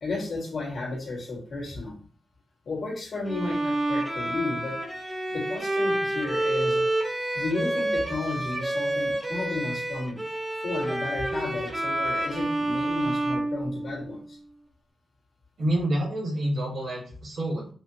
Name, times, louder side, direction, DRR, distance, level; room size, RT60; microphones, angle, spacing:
voice 1, 0.0-2.0 2.7-4.8 5.3-6.9 7.3-10.2 10.6-14.4, left 2 dB, 55° left, -3 dB, 1.8 m, -33 dB
Bowed string instrument, 3.3-14.3, right 1 dB, 15° right, 0.7 m, -28 dB
voice 2, 15.6-17.7, right 1 dB, 65° right, -3 dB, 1.8 m, -28 dB
5.4 x 2.2 x 2.8 m, 0.42 s
wide cardioid pair, 170°, 0 cm